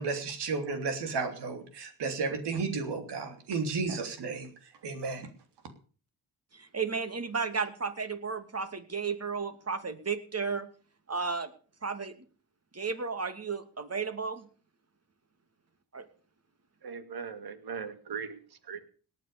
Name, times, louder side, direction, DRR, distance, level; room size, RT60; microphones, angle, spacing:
voice 1, 0.0-4.5 4.8-5.3, right 4 dB, 85° right, 7 dB, 3.4 m, -33 dB
voice 2, 6.5-10.7 11.1-11.5 11.8-12.1 12.7-14.5 15.9-16.0, right 5 dB, 40° right, 9 dB, 2.6 m, -33 dB
voice 3, 16.8-18.9, right 6 dB, 70° right, 9 dB, 2.6 m, -39 dB
18.5 x 9.3 x 6.8 m, 0.40 s
cardioid pair, 70°, 40 cm